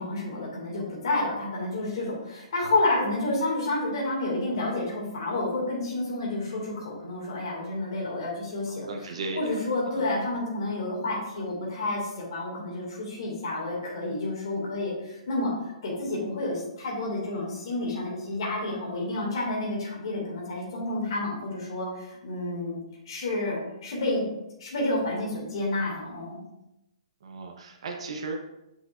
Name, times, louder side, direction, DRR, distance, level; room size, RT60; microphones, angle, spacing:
voice 1, 0.0-8.9 9.3-15.5 15.8-22.8 23.1-24.3 24.6-26.4, left 2 dB, 45° left, -3 dB, 2.3 m, -30 dB
voice 2, 8.7-9.6 9.9-10.1 27.2-28.4, right 3 dB, 55° right, 2 dB, 0.9 m, -36 dB
8.0 x 5.7 x 2.6 m, 0.88 s
hypercardioid pair, 175°, 4 cm